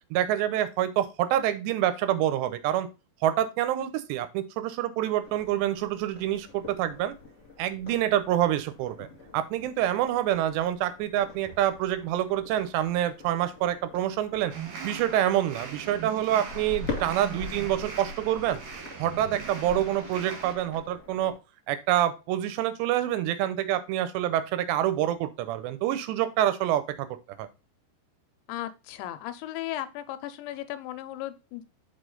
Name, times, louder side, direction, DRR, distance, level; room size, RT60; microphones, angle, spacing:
voice 1, 0.1-2.9 3.2-7.1 7.6-9.1 9.3-14.5 14.8-18.6 19.0-21.3 21.7-27.1 27.4-27.5, right 12 dB, 85° right, 12 dB, 2.8 m, -27 dB
sound 1, 5.2-21.4, left 3 dB, 20° left, 2.4 m, -44 dB
sound 2, 14.5-20.5, right 6 dB, 60° right, 2.3 m, -40 dB
voice 2, 28.5-31.6, left 13 dB, 85° left, 11 dB, 3.0 m, -36 dB
6.3 x 5.0 x 3.8 m, 0.28 s
omnidirectional pair, 5.1 m